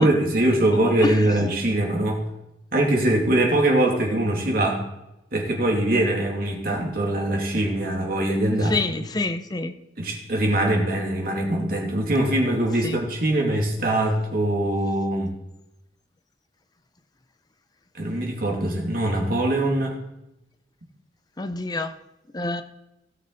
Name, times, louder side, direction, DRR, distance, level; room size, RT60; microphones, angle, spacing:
voice 1, 0.0-2.2 2.7-4.8 5.3-8.8 10.0-15.3 17.9-20.0, right 1 dB, 55° right, 0 dB, 2.5 m, -22 dB
voice 2, 8.6-9.7 12.8-12.9 21.4-21.9 22.3-22.6, left 2 dB, 20° left, 8 dB, 0.6 m, -26 dB
17.5 x 6.5 x 4.0 m, 0.89 s
head